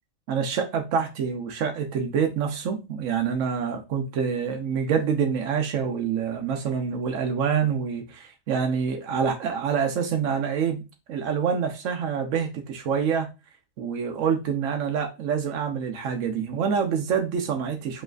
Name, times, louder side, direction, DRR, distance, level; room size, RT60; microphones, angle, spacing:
voice 1, 0.3-10.8 11.1-13.3 13.8-18.0, right 7 dB, 80° right, 1.1 m, -26 dB
5.1 x 3.2 x 2.4 m
omnidirectional pair, 1.3 m